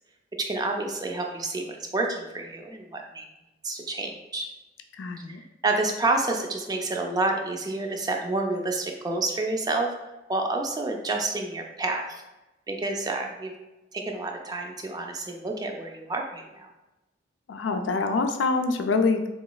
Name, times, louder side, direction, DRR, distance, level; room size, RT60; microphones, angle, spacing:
voice 1, 0.4-3.3 3.6-4.5 5.3-9.9 10.3-12.2 12.7-13.5 13.9-16.7, right 2 dB, 20° right, 2 dB, 0.4 m, -29 dB
voice 2, 5.0-5.4 17.5-19.3, left 4 dB, 80° left, 6 dB, 0.4 m, -25 dB
4.0 x 2.9 x 2.3 m, 1.0 s
head